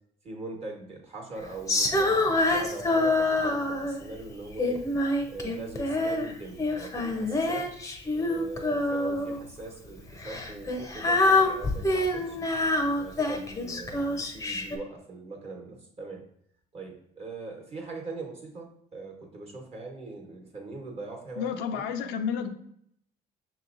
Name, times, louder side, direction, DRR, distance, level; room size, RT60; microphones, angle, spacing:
voice 1, 0.2-4.8 5.3-7.7 8.3-12.4 13.0-16.2 16.7-21.8, right 3 dB, 35° right, 1 dB, 1.2 m, -41 dB
Female singing, 1.7-4.1 4.6-6.3 6.6-9.4 10.2-14.8, left 2 dB, 20° left, 0.6 m, -26 dB
voice 2, 21.4-22.5, left 7 dB, 90° left, 7 dB, 0.5 m, -30 dB
6.1 x 2.9 x 2.5 m, 0.68 s
cardioid pair, 110°, 17 cm